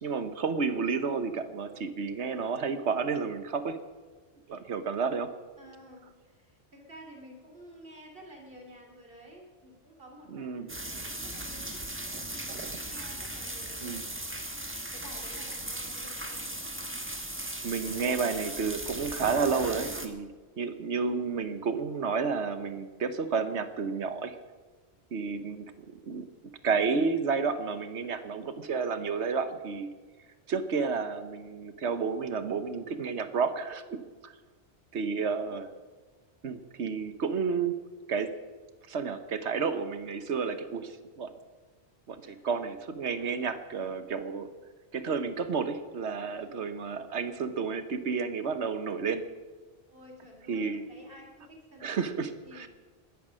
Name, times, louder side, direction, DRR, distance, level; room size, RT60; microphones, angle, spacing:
voice 1, 0.0-3.8 4.5-5.3 10.3-10.7 12.5-12.8 13.8-14.0 17.6-20.3 20.6-24.4 25.1-26.2 26.6-29.9 30.5-34.3 34.9-35.7 36.4-37.8 38.1-38.3 38.9-41.3 42.1-44.5 44.9-49.2 50.5-50.8 51.8-52.7, right 5 dB, 75° right, 10 dB, 1.3 m, -31 dB
voice 2, 5.6-11.8 12.9-14.4 14.9-16.5 34.9-35.6 42.2-42.4 46.3-46.6 49.9-52.2 52.4-52.7, equal, 50° right, 1 dB, 3.0 m, -52 dB
sound 1, 10.7-20.1, right 1 dB, 10° right, 1.2 m, -38 dB
20.5 x 10.0 x 6.3 m, 1.3 s
omnidirectional pair, 1.2 m